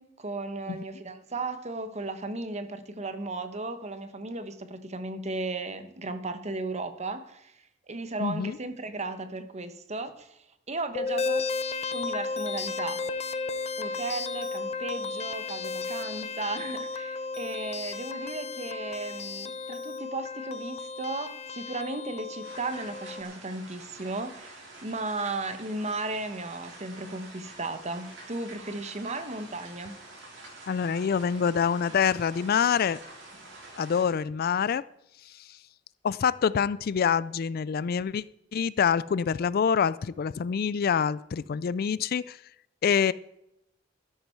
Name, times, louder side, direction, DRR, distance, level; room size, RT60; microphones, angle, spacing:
voice 1, 0.0-7.5 7.9-10.4 10.7-11.5 11.9-13.0 13.8-30.0, right 2 dB, 35° right, 10 dB, 1.1 m, -35 dB
voice 2, 8.2-8.6 30.7-33.0 33.8-34.8 36.0-38.2 38.5-42.4 42.8-43.1, left 7 dB, 55° left, 18 dB, 0.4 m, -26 dB
sound 1, 10.9-23.2, left 4 dB, 35° left, 0.7 m, -34 dB
sound 2, 22.4-34.0, right 2 dB, 80° right, 4.9 m, -47 dB
13.0 x 11.0 x 4.6 m, 0.83 s
head